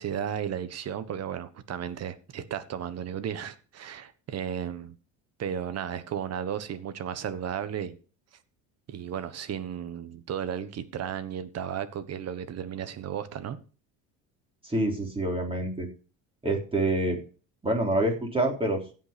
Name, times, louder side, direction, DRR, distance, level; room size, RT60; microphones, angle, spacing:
voice 1, 0.0-5.0 5.4-8.0 8.9-13.6, right 9 dB, 45° right, 1.4 m, -34 dB
voice 2, 14.6-15.9 16.4-17.2 17.6-18.8, right 1 dB, 15° right, 3.7 m, -26 dB
16.0 x 5.7 x 5.2 m
cardioid pair, 110°, 35 cm